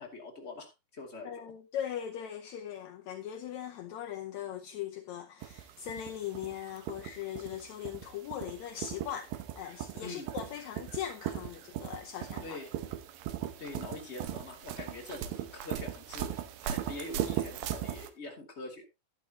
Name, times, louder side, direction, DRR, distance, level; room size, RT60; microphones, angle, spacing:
voice 1, 0.0-1.4 10.0-10.3 12.4-12.7 13.6-18.9, left 2 dB, 20° left, 2.5 m, -44 dB
voice 2, 1.2-12.6, left 10 dB, 75° left, 1.7 m, -40 dB
sound 1, 5.4-18.1, right 11 dB, 75° right, 2.7 m, -38 dB
11.5 x 11.5 x 2.9 m
omnidirectional pair, 4.3 m